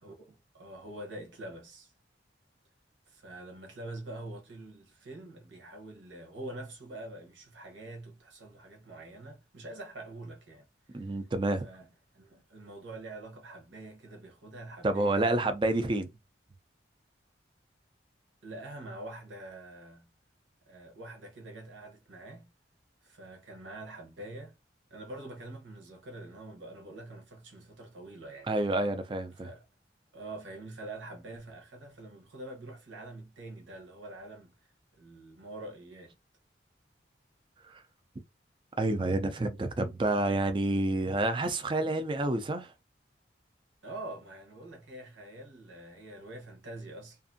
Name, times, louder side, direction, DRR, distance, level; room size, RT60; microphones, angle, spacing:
voice 1, 0.0-1.9 3.1-11.2 11.6-11.9 12.1-15.8 18.4-20.1 20.7-22.5 23.0-24.6 24.9-28.5 29.3-29.6 30.1-36.2 43.8-47.2, right 2 dB, 85° right, 0.9 m, -45 dB
voice 2, 10.9-11.6 14.8-16.1 28.5-29.5 37.7-37.8 38.8-42.7, right 2 dB, 25° right, 0.4 m, -29 dB
2.6 x 2.4 x 2.5 m
head